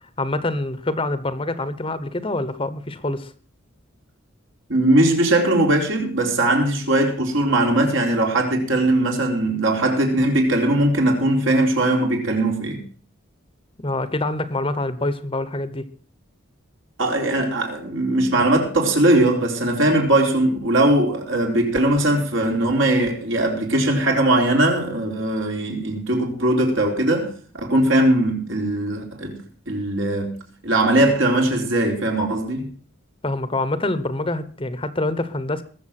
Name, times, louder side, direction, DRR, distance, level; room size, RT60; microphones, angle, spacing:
voice 1, 0.2-3.3 13.8-15.9 33.2-35.6, left 2 dB, 25° left, 1.0 m, -25 dB
voice 2, 4.7-12.9 17.0-30.4 30.6-32.7, right 1 dB, 65° right, 4.4 m, -20 dB
21.5 x 7.4 x 6.0 m
head